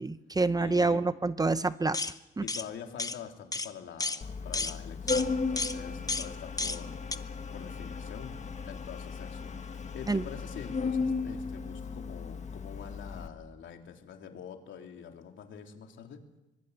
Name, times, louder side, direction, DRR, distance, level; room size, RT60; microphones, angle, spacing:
voice 1, 0.0-2.0 2.4-2.5 10.1-10.2, right 3 dB, 20° right, 13 dB, 0.8 m, -27 dB
voice 2, 0.6-1.0 2.4-8.4 8.7-16.2, left 7 dB, 70° left, 3 dB, 3.5 m, -45 dB
sound 1, 1.9-2.1 2.5-2.6 3.0-3.2 3.5-3.7 4.0-4.2 4.5-4.8 5.1-5.3 5.6-5.8 6.1-6.3 6.6-6.8 7.1-7.2, left 3 dB, 20° left, 1.2 m, -32 dB
Organ, 4.2-13.3, left 4 dB, 35° left, 1.8 m, -35 dB
24.0 x 21.0 x 8.2 m, 0.96 s
cardioid pair, 90°, 20 cm